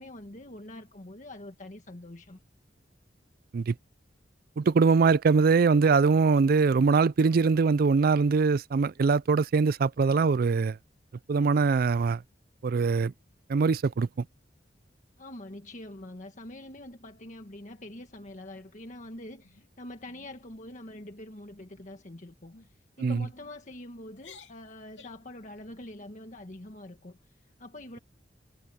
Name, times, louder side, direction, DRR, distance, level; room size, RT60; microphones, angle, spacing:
voice 1, 0.0-2.4 15.2-28.0, left 1 dB, 45° left, 1.6 m, -45 dB
voice 2, 4.6-10.8 11.3-12.2 12.6-13.1 13.5-14.2 23.0-23.3, right 4 dB, 55° right, 0.4 m, -23 dB
sound 1, 19.4-19.7 20.0-20.3 20.7-21.0 21.7-22.0 22.5-22.7 23.4-23.8 24.1-25.3, left 5 dB, 85° left, 2.8 m, -55 dB
head